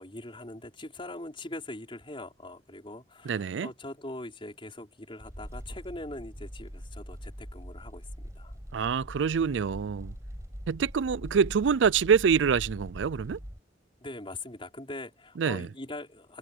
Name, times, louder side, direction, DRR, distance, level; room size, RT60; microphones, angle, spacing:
voice 1, 0.0-8.1 8.4-8.5 14.0-16.4, left 2 dB, 30° left, 5.4 m, -42 dB
voice 2, 3.2-3.7 8.7-10.1 10.7-13.4 15.4-15.7, right 6 dB, 85° right, 0.4 m, -26 dB
sound 1, 5.2-13.6, equal, 15° right, 6.3 m, -43 dB
head